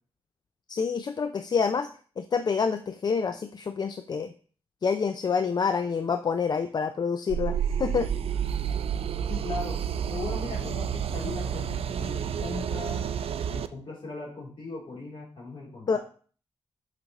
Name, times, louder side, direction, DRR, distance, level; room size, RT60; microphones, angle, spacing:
voice 1, 0.7-1.9 2.2-4.3 4.8-8.1 15.9-16.0, left 5 dB, 45° left, 8 dB, 0.4 m, -27 dB
sound 1, 7.3-13.7, right 8 dB, 75° right, 0.4 m, -30 dB
voice 2, 9.3-9.8 10.1-13.0 13.5-16.0, left 3 dB, 60° left, -4 dB, 3.1 m, -38 dB
6.4 x 5.8 x 3.0 m, 0.43 s
wide cardioid pair, 105°, 10 cm